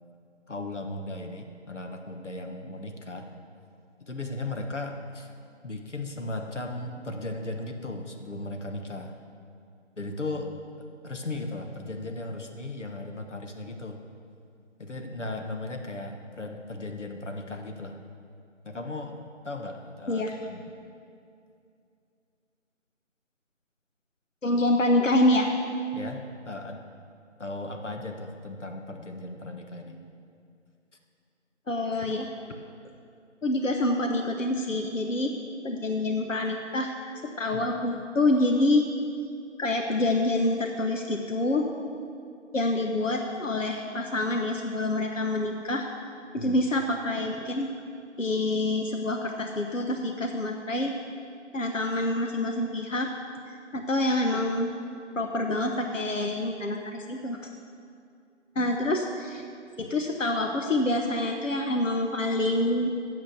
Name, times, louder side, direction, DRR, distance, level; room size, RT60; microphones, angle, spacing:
voice 1, 0.5-3.3 4.0-5.3 5.6-9.2 10.0-10.5 10.8-14.0 14.8-18.0 18.6-19.2 19.4-20.6 25.9-26.8 27.4-30.1 37.5-37.6 46.3-46.6, left 2 dB, 70° left, 4 dB, 1.3 m, -36 dB
voice 2, 24.4-25.5 31.7-32.3 33.4-35.3 35.6-36.9 37.4-38.8 39.6-41.6 42.5-45.9 46.3-47.7 48.2-50.9 51.5-53.1 53.5-54.7 55.2-57.4 58.5-59.4 59.8-62.9, left 1 dB, 90° left, 3 dB, 1.1 m, -26 dB
8.1 x 7.4 x 8.2 m, 2.5 s
figure-of-eight pair, 175°, 37 cm